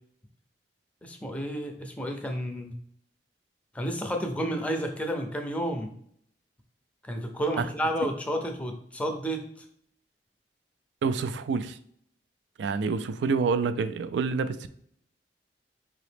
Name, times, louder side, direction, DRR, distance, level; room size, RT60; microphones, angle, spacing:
voice 1, 1.0-2.7 3.7-5.9 7.0-9.4, equal, 10° left, 4 dB, 0.5 m, -31 dB
voice 2, 11.0-11.8 12.6-14.7, right 5 dB, 75° right, 12 dB, 0.3 m, -27 dB
4.8 x 2.9 x 3.3 m, 0.65 s
head